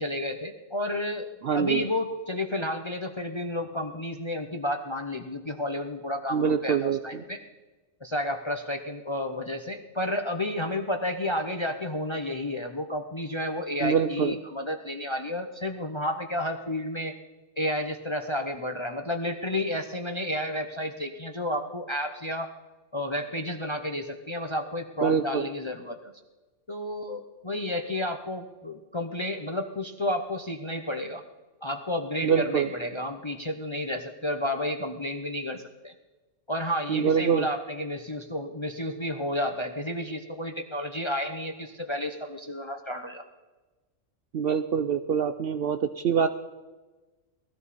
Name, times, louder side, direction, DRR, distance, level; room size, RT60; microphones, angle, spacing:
voice 1, 0.0-7.4 8.0-17.1 17.6-22.5 22.9-26.1 26.7-31.2 31.6-35.9 36.5-43.2, left 1 dB, 30° left, 5 dB, 0.6 m, -31 dB
voice 2, 1.4-1.8 6.3-7.2 13.8-14.4 25.0-25.5 32.2-32.7 36.9-37.5 44.3-46.3, right 7 dB, 60° right, 9 dB, 0.6 m, -25 dB
19.5 x 13.5 x 4.2 m, 1.2 s
omnidirectional pair, 1.4 m